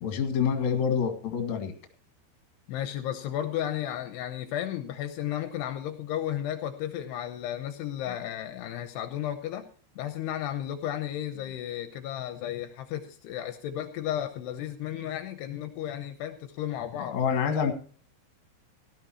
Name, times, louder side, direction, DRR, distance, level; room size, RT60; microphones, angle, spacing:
voice 1, 0.0-1.7 17.0-17.7, left 7 dB, 50° left, 5 dB, 2.6 m, -27 dB
voice 2, 2.7-9.7 10.0-17.2, left 11 dB, 80° left, 9 dB, 2.8 m, -33 dB
17.5 x 12.5 x 3.0 m, 0.42 s
omnidirectional pair, 5.0 m